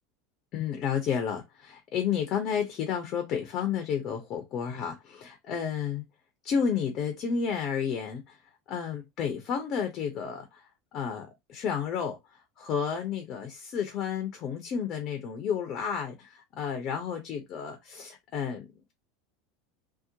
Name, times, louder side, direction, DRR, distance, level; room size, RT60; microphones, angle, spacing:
voice 1, 0.5-6.0 6.4-8.4 8.7-12.2 12.6-18.7, left 7 dB, 45° left, 0.6 m, -31 dB
2.8 x 2.1 x 2.6 m
hypercardioid pair, 80°, 0 cm